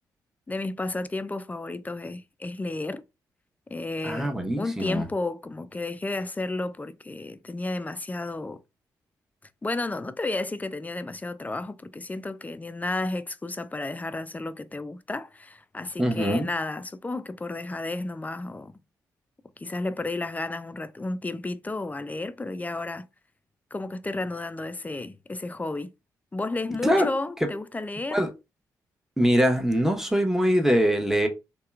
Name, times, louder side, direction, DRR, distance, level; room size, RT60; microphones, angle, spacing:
voice 1, 0.5-3.0 3.7-8.6 9.6-18.7 19.6-23.1 23.7-25.9 26.3-28.2, left 2 dB, 20° left, 0.3 m, -32 dB
voice 2, 4.0-5.0 16.0-16.5 26.8-27.1 27.4-27.5 28.1-28.3 29.2-31.3, equal, 5° right, 0.9 m, -23 dB
2.8 x 2.2 x 2.3 m
hypercardioid pair, 40°, 8 cm